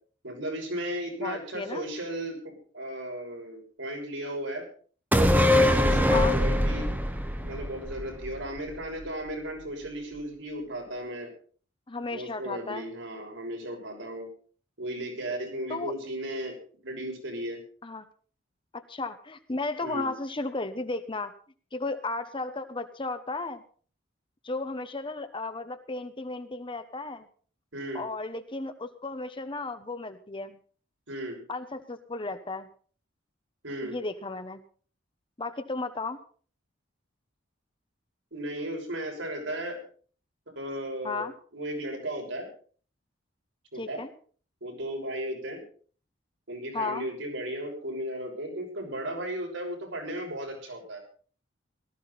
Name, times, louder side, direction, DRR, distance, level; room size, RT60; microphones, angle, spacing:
voice 1, 0.2-4.7 5.5-7.0 7.4-11.3 12.1-14.3 14.8-16.6 16.8-17.6 19.8-20.1 27.7-28.0 31.1-31.4 33.6-34.0 38.3-39.8 40.5-42.5 43.7-44.0 44.6-45.6 46.5-51.0, right 1 dB, 80° right, 0 dB, 6.4 m, -35 dB
voice 2, 1.2-1.9 6.1-6.4 11.9-12.8 15.7-15.9 17.8-18.0 18.7-21.3 21.7-23.6 24.4-27.3 27.9-30.6 31.5-32.7 33.8-34.6 35.4-36.2 41.0-41.3 43.7-44.1 46.7-47.1, left 3 dB, 25° left, 9 dB, 1.0 m, -34 dB
sound 1, 5.1-8.7 9.0-9.1, left 1 dB, 10° right, 1.1 m, -23 dB
18.0 x 14.0 x 4.2 m, 0.43 s
head